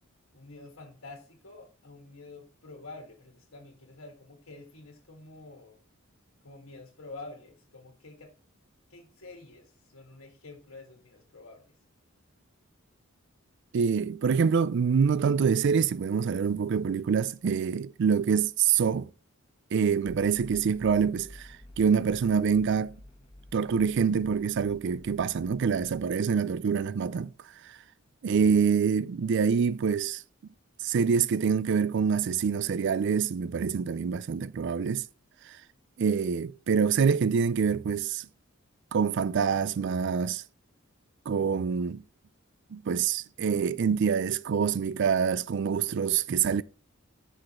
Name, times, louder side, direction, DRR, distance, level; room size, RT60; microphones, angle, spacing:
voice 1, 0.3-5.8 6.4-8.3 8.9-11.8, left 3 dB, 70° left, 1.9 m, -48 dB
voice 2, 13.7-19.1 19.7-21.5 21.8-22.9 23.5-27.3 28.2-30.2 30.8-35.0 36.0-38.3 38.9-40.4 41.3-42.0 42.7-46.6, right 6 dB, 55° right, 0.4 m, -26 dB
sound 1, 20.0-26.2, left 1 dB, 25° left, 1.3 m, -51 dB
6.3 x 4.8 x 4.2 m
head